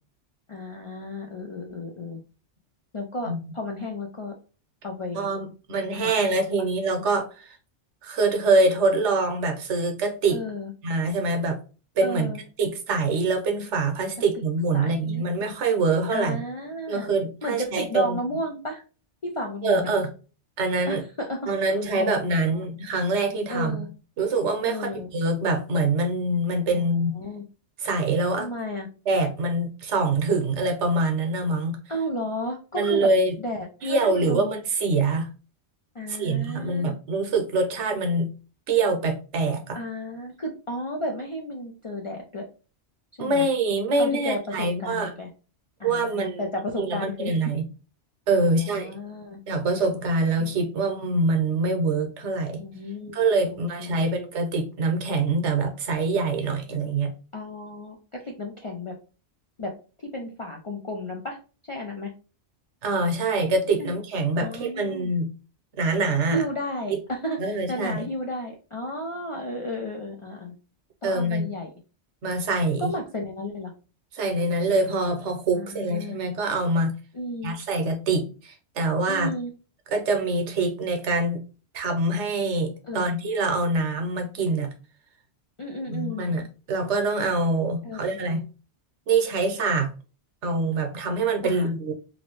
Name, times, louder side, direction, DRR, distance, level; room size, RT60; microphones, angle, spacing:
voice 1, 0.5-2.2 2.9-4.3 4.8-5.3 6.0-6.1 10.3-10.7 12.0-12.4 14.7-15.2 16.1-17.1 17.4-18.8 19.2-19.9 20.9-21.4 21.6-22.6 23.5-23.9 24.7-25.1 26.7-27.4 28.4-28.9 31.9-33.1 33.4-34.6 35.9-37.0 39.7-42.5 43.2-43.5 44.0-45.3 45.8-47.3 48.4-49.4 50.4-50.5 52.6-53.2 53.5-54.0 57.3-59.0 59.6-59.7 60.0-61.4 61.7-62.1 63.8-63.9 64.4-65.1 66.3-70.5 71.0-71.7 72.8-73.7 75.5-76.2 77.1-77.6 79.1-79.5 82.8-83.1 85.6-86.2 87.8-88.4 91.4-91.7, left 1 dB, 55° left, 0.3 m, -33 dB
voice 2, 5.1-7.6 8.0-10.4 10.8-11.6 12.0-12.3 12.6-16.4 16.9-18.2 19.6-20.1 20.6-21.0 21.5-23.9 24.2-27.1 27.8-28.5 29.1-31.8 32.7-33.3 33.8-35.3 36.2-38.3 38.7-39.8 43.2-45.1 45.8-46.4 46.8-47.6 48.3-48.9 49.5-52.6 53.1-57.1 62.8-65.3 65.8-66.4 66.9-67.0 67.4-68.1 71.0-71.5 72.2-72.9 74.1-76.9 77.4-79.3 79.9-81.4 81.7-84.7 85.9-86.4 86.7-88.4 89.1-89.9 90.4-91.9, right 3 dB, 80° right, 1.1 m, -24 dB
3.0 x 2.6 x 2.9 m
omnidirectional pair, 1.2 m